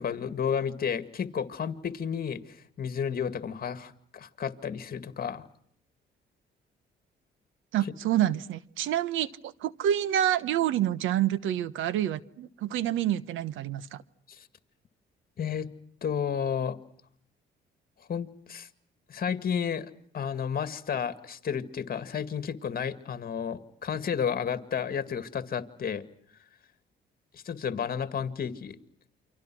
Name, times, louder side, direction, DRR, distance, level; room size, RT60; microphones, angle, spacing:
voice 1, 0.0-5.5 14.3-14.4 15.4-15.7 16.0-16.8 18.1-18.7 19.1-19.9 20.1-26.0 27.3-28.8, left 7 dB, 50° left, 11 dB, 2.1 m, -32 dB
voice 2, 7.7-14.0, right 11 dB, 85° right, 17 dB, 1.1 m, -28 dB
29.0 x 25.5 x 6.1 m, 0.65 s
cardioid pair, 90°, 20 cm